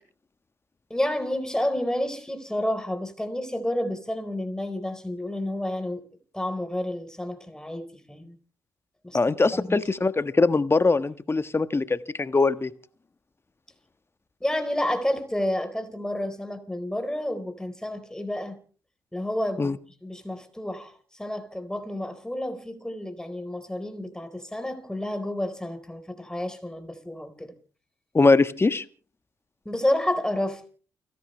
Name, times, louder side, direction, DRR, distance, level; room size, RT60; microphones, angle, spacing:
voice 1, 0.9-6.0 6.3-8.4 9.0-9.2 9.5-9.8 14.4-18.6 19.1-19.7 20.0-27.5 29.6-30.6, left 1 dB, 5° left, 4.2 m, -30 dB
voice 2, 9.1-12.7 19.6-19.8 28.1-28.8, left 3 dB, 25° left, 1.4 m, -22 dB
29.5 x 11.5 x 3.3 m
hypercardioid pair, 45°, 9 cm